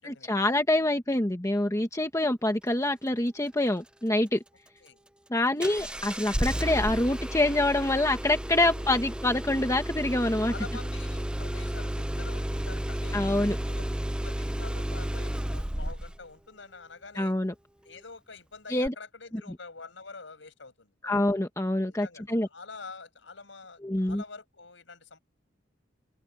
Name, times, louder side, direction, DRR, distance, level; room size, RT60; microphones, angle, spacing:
voice 1, 0.0-4.4 5.3-10.5 13.1-13.6 17.1-17.5 18.7-18.9 21.0-22.5 23.8-24.2, left 1 dB, 15° left, 1.2 m, -26 dB
Engine starting, 5.6-16.2 18.9-19.0, equal, 5° right, 0.5 m, -32 dB
voice 2, 8.5-9.0 10.4-13.2 13.6-13.8 14.2-17.3 17.8-21.1 21.9-25.2, left 4 dB, 70° left, 6.9 m, -46 dB
head